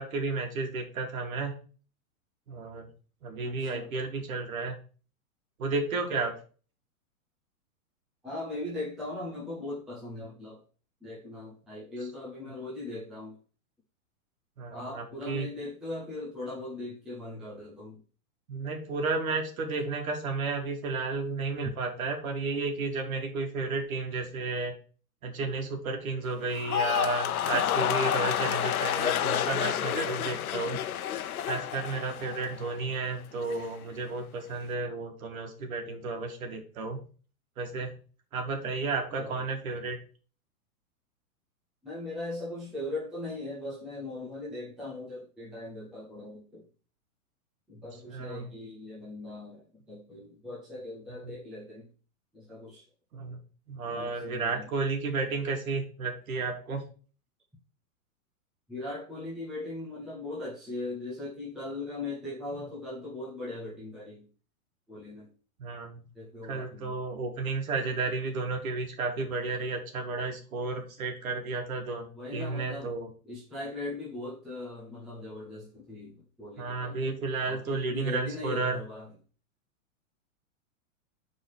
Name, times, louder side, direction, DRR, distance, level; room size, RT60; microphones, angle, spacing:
voice 1, 0.0-1.6 2.5-2.9 3.2-4.8 5.6-6.4 14.6-15.5 18.5-24.7 25.2-30.8 31.5-37.0 37.6-38.0 38.3-40.0 48.1-48.5 51.1-51.3 53.1-53.4 53.7-56.8 65.6-66.0 66.4-73.1 76.6-78.8, right 3 dB, 75° right, 3 dB, 2.4 m, -32 dB
voice 2, 3.4-3.9 8.2-10.6 11.0-13.3 14.7-18.0 39.2-39.4 41.8-46.7 47.7-51.9 52.3-52.8 53.9-54.7 58.7-64.3 64.9-65.3 66.1-67.0 72.1-72.9 73.2-77.1 77.5-79.1, left 2 dB, ahead, -7 dB, 0.5 m, -39 dB
sound 1, 26.5-32.8 33.1-33.7, left 10 dB, 80° left, 0.9 m, -30 dB
8.8 x 4.6 x 4.7 m, 0.40 s
supercardioid pair, 175°, 42 cm